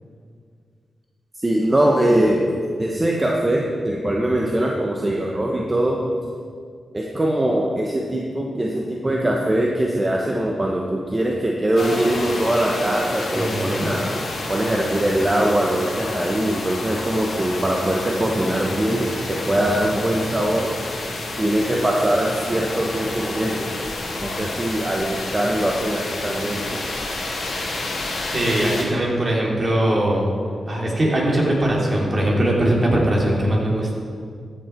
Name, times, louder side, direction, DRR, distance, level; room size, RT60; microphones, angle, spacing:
voice 1, 1.4-2.5 2.8-6.0 6.9-14.2 14.5-20.7 21.4-23.7 24.2-26.9, right 1 dB, 25° right, -1 dB, 1.2 m, -22 dB
sound 1, 11.8-28.8, left 2 dB, 75° left, 2.1 m, -30 dB
voice 2, 13.3-13.9 28.3-30.2 30.7-33.9, right 1 dB, 45° right, -2 dB, 2.9 m, -20 dB
14.0 x 6.7 x 4.5 m, 2.1 s
cardioid pair, 55°, 0 cm